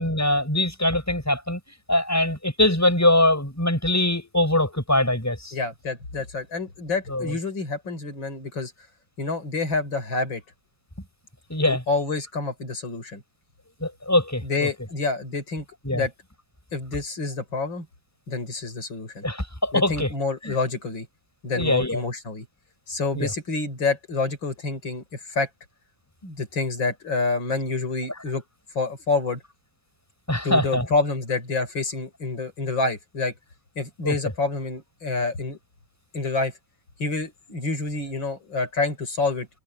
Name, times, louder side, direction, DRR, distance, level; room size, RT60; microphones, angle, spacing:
voice 1, 0.0-1.6 1.9-5.5 7.1-7.3 11.5-11.8 13.8-14.7 15.8-16.0 19.2-20.1 20.4-20.5 21.5-22.0 23.1-23.3 30.3-30.9 34.0-34.1, left 1 dB, 10° left, 6.1 m, -22 dB
voice 2, 5.5-8.7 9.2-10.4 11.7-13.2 14.4-16.1 16.7-17.9 18.3-19.2 19.7-21.1 21.4-22.5 22.9-25.5 26.2-28.4 28.8-29.4 30.4-33.3 33.8-35.6 36.1-36.5 37.0-39.5, left 3 dB, 85° left, 5.6 m, -28 dB
omnidirectional pair, 2.0 m